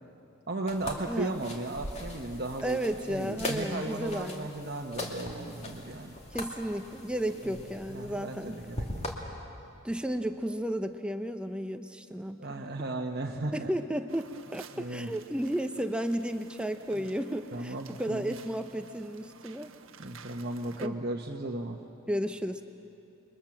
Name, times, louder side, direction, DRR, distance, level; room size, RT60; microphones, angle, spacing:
voice 1, 0.5-6.2 7.4-7.6 7.9-9.0 12.4-13.7 14.7-15.1 16.9-17.1 17.5-18.4 20.0-21.8, right 2 dB, 50° right, 1 dB, 1.2 m, -36 dB
sound 1, 0.7-9.1, left 1 dB, 30° left, 2.4 m, -40 dB
voice 2, 1.1-1.5 2.6-4.5 6.3-8.6 9.8-12.4 13.5-19.7 20.8-21.0 22.1-22.6, equal, 5° right, 7 dB, 0.7 m, -33 dB
sound 2, 14.1-20.9, right 6 dB, 70° right, 1.2 m, -53 dB
29.0 x 22.5 x 7.4 m, 2.9 s
head